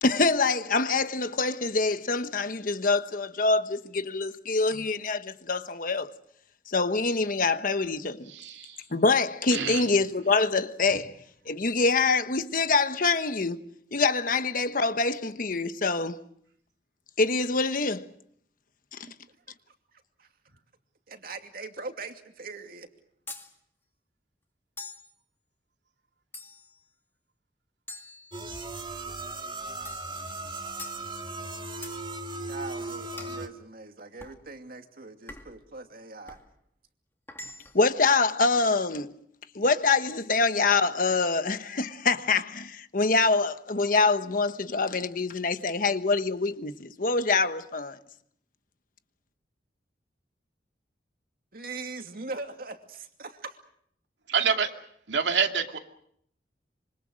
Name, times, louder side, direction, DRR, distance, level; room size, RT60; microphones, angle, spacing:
voice 1, 0.0-6.1 6.7-8.3 8.9-11.1 11.5-13.6 13.9-16.2 17.2-18.1 18.9-19.1 37.7-39.1 39.5-48.0, left 3 dB, 50° left, 1.2 m, -25 dB
voice 2, 8.3-8.8 9.5-9.9 54.3-54.7 55.1-55.8, right 6 dB, 90° right, 2.5 m, -27 dB
voice 3, 19.0-19.4 19.9-20.3 21.1-22.9 32.5-36.4 51.5-53.6, right 3 dB, 55° right, 2.6 m, -41 dB
sound 1, 23.3-23.5 24.8-25.1 26.3-26.8 27.9-28.8 29.8-30.1 30.8-31.0 31.8-32.0 33.2-33.4 34.2-34.4 35.3-35.6 36.3-36.5 37.3-37.9, left 2 dB, 15° left, 2.3 m, -44 dB
sound 2, 28.3-33.5, right 2 dB, 25° right, 2.3 m, -37 dB
26.5 x 25.0 x 6.4 m
head